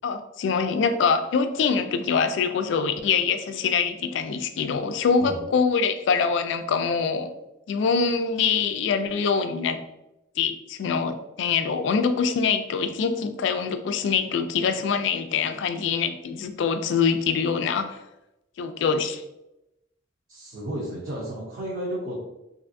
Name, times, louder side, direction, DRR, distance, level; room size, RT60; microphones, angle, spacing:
voice 1, 0.0-7.3 7.7-9.8 10.4-18.0 18.6-19.2, left 5 dB, 70° left, 9 dB, 0.3 m, -24 dB
voice 2, 20.3-22.2, right 1 dB, 50° right, -5 dB, 0.7 m, -32 dB
3.3 x 2.6 x 2.5 m, 0.92 s
head